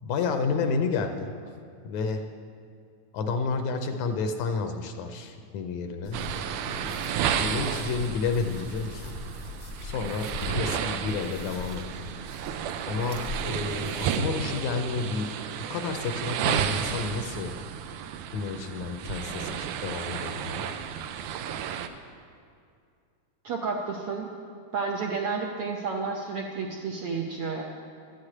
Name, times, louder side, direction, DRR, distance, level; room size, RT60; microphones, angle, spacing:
voice 1, 0.0-1.3 1.8-2.3 3.1-6.3 6.7-7.0 7.4-9.2 9.8-12.1 12.8-17.6 18.3-20.7, left 4 dB, 75° left, 6 dB, 1.9 m, -31 dB
sound 1, 6.0-14.1, left 2 dB, 40° left, 0.9 m, -40 dB
sound 2, 6.1-21.9, right 8 dB, 85° right, 2.2 m, -32 dB
voice 2, 23.4-24.3 24.7-27.6, right 4 dB, 70° right, -1 dB, 1.4 m, -31 dB
12.5 x 6.6 x 8.6 m, 2.3 s
omnidirectional pair, 3.6 m